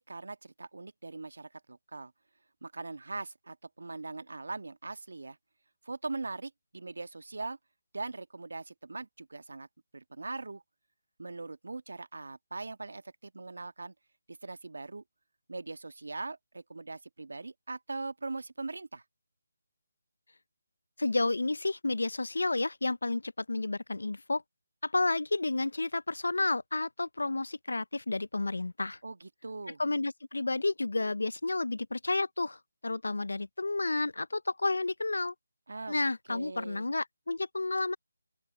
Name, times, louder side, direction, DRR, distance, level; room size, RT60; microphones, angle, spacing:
voice 1, 0.0-2.1 2.6-5.4 5.8-7.6 7.9-9.7 9.9-10.6 11.2-13.9 14.3-15.0 15.5-19.0 29.0-29.8 35.7-36.0 36.3-36.9, right 3 dB, 75° right, 1.6 m, -41 dB
voice 2, 21.0-24.4 24.8-29.0 29.8-35.3 35.9-38.0, left 2 dB, 80° left, 0.6 m, -31 dB
open air
figure-of-eight pair, 155°, 0 cm